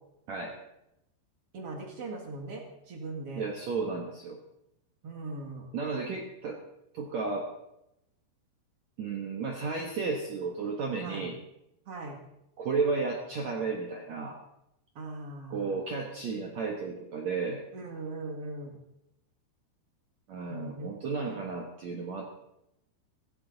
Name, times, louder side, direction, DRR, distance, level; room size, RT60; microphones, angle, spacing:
voice 1, 1.5-3.4 5.0-5.7 11.0-11.3 11.9-12.2 15.0-15.7 17.7-18.8 20.5-20.9 21.3-21.4, right 2 dB, 50° right, 2 dB, 1.9 m, -40 dB
voice 2, 3.3-4.4 5.7-6.6 6.9-7.5 9.0-11.4 12.6-14.4 15.5-17.6 20.3-22.3, right 4 dB, 80° right, 1 dB, 1.5 m, -33 dB
17.0 x 15.0 x 4.0 m, 0.85 s
omnidirectional pair, 5.5 m